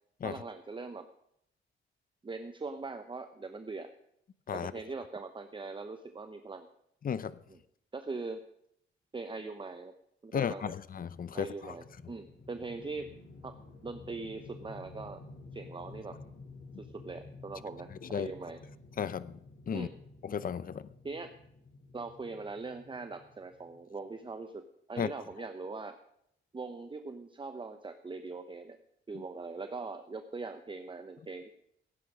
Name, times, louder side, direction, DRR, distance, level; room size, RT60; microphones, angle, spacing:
voice 1, 0.2-1.1 2.2-3.9 4.5-6.7 7.5-7.6 7.9-8.4 9.1-9.9 10.2-10.7 11.3-13.1 13.4-13.6 13.8-15.2 15.5-16.2 16.8-18.6 19.7-19.9 21.0-21.3 21.9-24.6 24.9-26.0 26.5-28.8 29.1-31.5, right 3 dB, 25° right, 8 dB, 0.9 m, -41 dB
voice 2, 7.0-7.4 10.3-11.7 18.1-18.3 19.0-19.4 19.7-19.9 20.2-20.9 25.0-25.1, left 7 dB, 45° left, 17 dB, 0.7 m, -34 dB
sound 1, 11.6-23.8, left 3 dB, 60° left, 3.0 m, -52 dB
17.0 x 9.5 x 5.0 m, 0.74 s
cardioid pair, 95°, 21 cm